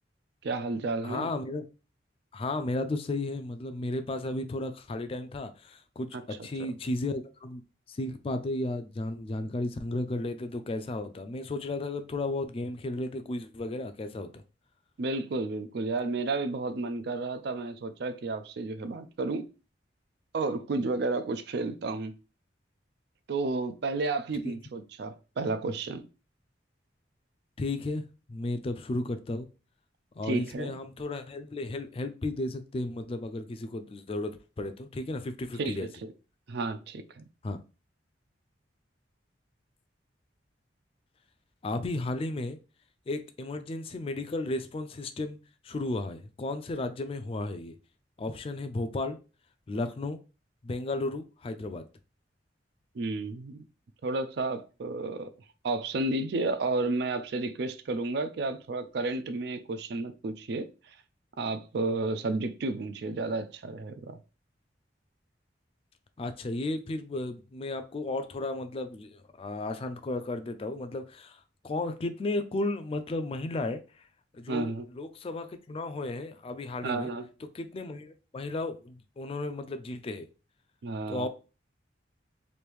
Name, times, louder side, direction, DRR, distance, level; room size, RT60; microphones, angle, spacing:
voice 1, 0.4-1.3 6.1-6.2 15.0-19.5 20.3-22.1 23.3-26.0 30.2-30.7 35.6-36.1 36.5-37.2 52.9-53.7 54.0-55.3 55.6-60.7 61.4-64.2 74.5-74.9 76.8-77.3 80.8-81.3, right 3 dB, 60° right, 0.4 m, -32 dB
voice 2, 1.0-1.6 2.3-7.6 7.9-14.3 24.4-24.6 27.6-29.5 30.2-35.9 37.4-37.6 41.6-42.6 43.1-45.4 45.6-47.7 48.2-49.2 49.7-50.2 50.6-51.9 66.2-73.8 74.3-77.1 77.4-80.3 81.1-81.3, left 2 dB, 30° left, 0.3 m, -34 dB
3.0 x 2.6 x 3.3 m
head